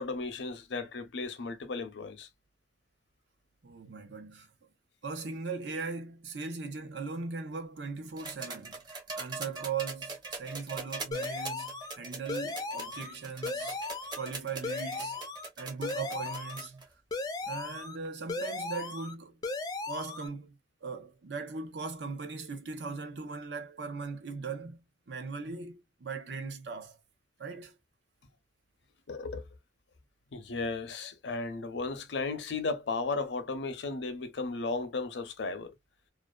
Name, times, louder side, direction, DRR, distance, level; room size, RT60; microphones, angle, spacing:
voice 1, 0.0-2.3 29.1-29.4 30.3-35.7, left 3 dB, 75° left, 0.6 m, -35 dB
voice 2, 3.6-4.5 5.0-8.8 9.2-13.8 14.2-15.3 15.6-16.8 17.4-19.4 19.8-20.5 20.8-27.0 27.4-27.7, right 4 dB, 75° right, 0.7 m, -39 dB
sound 1, 8.2-16.8 18.0-18.1, right 3 dB, 25° right, 0.7 m, -42 dB
sound 2, 11.1-12.0 12.3-13.1 13.4-14.3 14.6-15.5 15.8-16.7 17.1-18.0 18.3-19.1 19.4-20.3, left 3 dB, 20° left, 0.3 m, -36 dB
2.4 x 2.2 x 2.2 m
head